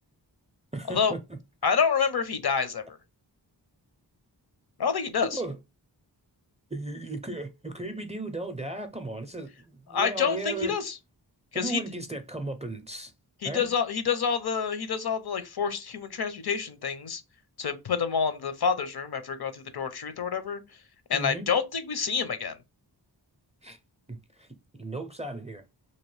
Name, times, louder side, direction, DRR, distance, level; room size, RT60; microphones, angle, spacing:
voice 1, 0.7-1.2 5.3-5.6 6.7-10.7 11.5-13.1 13.4-13.7 21.1-21.5 23.6-23.8 24.1-24.5 24.7-25.6, right 2 dB, 15° right, 0.4 m, -36 dB
voice 2, 1.6-3.0 4.8-5.4 9.9-11.0 11.5-11.8 13.4-17.2 17.6-20.6 21.1-22.5, left 6 dB, 60° left, 0.7 m, -28 dB
2.9 x 2.8 x 3.2 m
wide cardioid pair, 85°, 42 cm